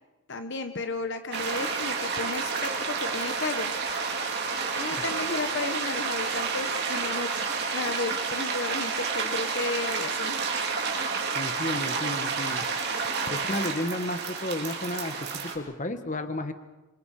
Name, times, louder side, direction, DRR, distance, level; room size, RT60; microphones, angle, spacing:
voice 1, 0.3-3.7 4.7-10.3, left 3 dB, 55° left, 7 dB, 1.3 m, -33 dB
sound 1, 1.3-15.6, right 5 dB, 50° right, 3.7 m, -30 dB
voice 2, 11.3-12.6 13.3-16.5, left 1 dB, 35° left, 8 dB, 1.6 m, -32 dB
26.5 x 26.5 x 5.1 m, 1.1 s
head